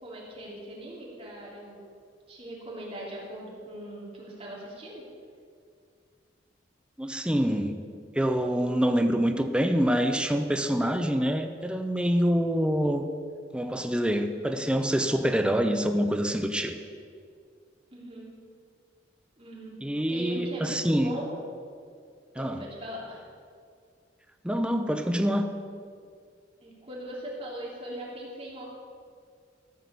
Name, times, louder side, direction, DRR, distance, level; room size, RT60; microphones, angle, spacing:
voice 1, 0.0-1.8 2.3-5.0 17.9-18.3 19.4-19.8 20.1-21.3 22.3-23.2 26.6-28.6, right 1 dB, 35° right, -5 dB, 3.1 m, -40 dB
voice 2, 7.0-7.8 8.1-13.1 13.5-16.7 19.8-21.2 22.4-22.6 24.4-25.5, equal, 5° right, 6 dB, 0.6 m, -26 dB
14.0 x 6.3 x 6.8 m, 2.2 s
head